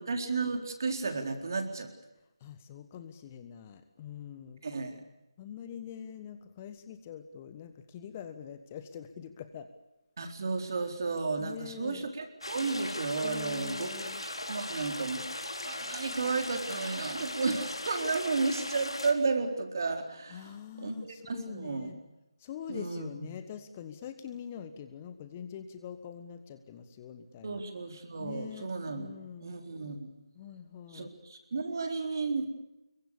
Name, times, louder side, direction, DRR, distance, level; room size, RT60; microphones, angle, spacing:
voice 1, 0.0-1.9 4.6-5.0 10.2-20.5 20.8-21.9 22.7-23.3 27.4-29.1 29.4-30.1 30.9-32.6, right 4 dB, 45° right, 5 dB, 4.1 m, -33 dB
voice 2, 2.4-4.6 5.4-9.7 11.4-12.1 13.2-14.2 20.3-22.0 22.4-27.6 28.2-29.5 30.3-31.1, left 8 dB, 20° left, 10 dB, 1.4 m, -44 dB
sound 1, 12.4-19.1, left 1 dB, 75° left, 4.2 m, -38 dB
26.0 x 23.0 x 7.0 m, 0.97 s
figure-of-eight pair, 155°, 3 cm